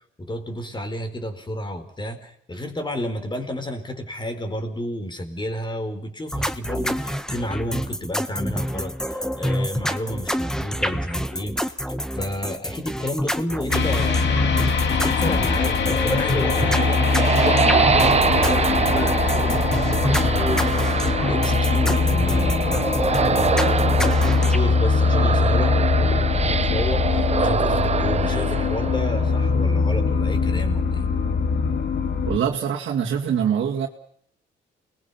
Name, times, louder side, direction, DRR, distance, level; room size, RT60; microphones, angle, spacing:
voice 1, 0.2-20.9 21.3-31.0, left 1 dB, 25° left, 8 dB, 4.5 m, -31 dB
sound 1, 6.3-24.6, equal, 5° left, 1.5 m, -27 dB
sound 2, 13.7-32.4, left 4 dB, 60° left, 2.8 m, -22 dB
sound 3, 16.1-29.6, right 6 dB, 30° right, 0.8 m, -25 dB
voice 2, 32.3-33.9, right 8 dB, 65° right, -1 dB, 2.2 m, -23 dB
29.0 x 21.0 x 5.9 m, 0.69 s
cardioid pair, 90°, 20 cm